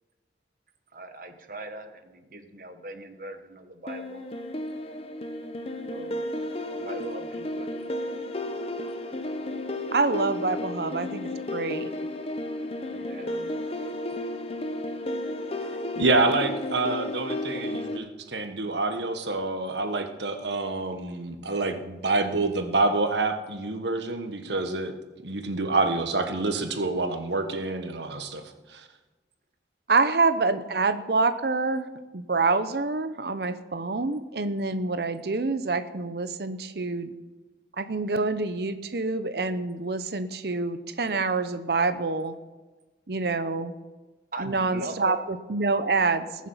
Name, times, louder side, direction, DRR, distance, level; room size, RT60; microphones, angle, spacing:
voice 1, 0.9-4.3 5.8-6.3 6.8-7.7 12.9-13.5 44.3-45.2, right 2 dB, 50° right, 7 dB, 1.3 m, -40 dB
sound 1, 3.9-18.0, left 1 dB, 35° left, 0.8 m, -33 dB
voice 2, 9.9-11.9 29.9-31.9 32.1-37.1 37.8-42.3 43.1-43.7 44.4-46.5, right 3 dB, 65° right, 11 dB, 0.8 m, -26 dB
voice 3, 16.0-25.0 25.2-28.4 28.7-28.9, right 3 dB, 85° right, 6 dB, 1.4 m, -27 dB
20.5 x 7.3 x 5.6 m, 1.2 s
head